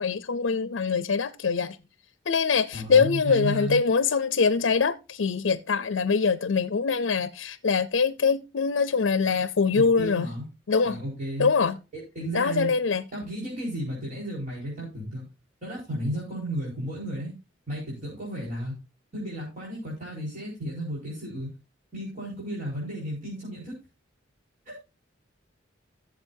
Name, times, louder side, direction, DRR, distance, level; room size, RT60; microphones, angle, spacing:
voice 1, 0.0-1.8 2.3-10.3 10.7-11.0 11.4-11.8 12.3-13.0, left 5 dB, 70° left, 0.5 m, -23 dB
voice 2, 2.7-3.8 9.7-10.4 10.8-11.5 11.9-12.7 13.1-15.2 15.6-17.3 17.7-18.7 19.1-21.5 21.9-23.8 24.6-24.8, equal, 45° right, 4.7 m, -33 dB
15.5 x 7.4 x 2.7 m
head